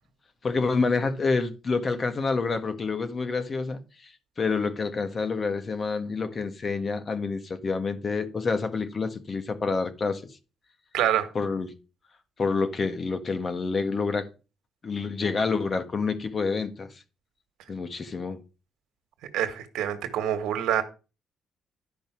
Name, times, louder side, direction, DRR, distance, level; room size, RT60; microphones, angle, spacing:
voice 1, 0.4-3.8 4.4-10.3 11.3-11.7 12.4-14.3 14.8-16.9 17.7-18.4, left 4 dB, 40° left, 1.6 m, -28 dB
voice 2, 10.9-11.3 19.3-20.8, right 11 dB, 90° right, 1.5 m, -26 dB
11.0 x 5.3 x 6.0 m
cardioid pair, 90°, 0 cm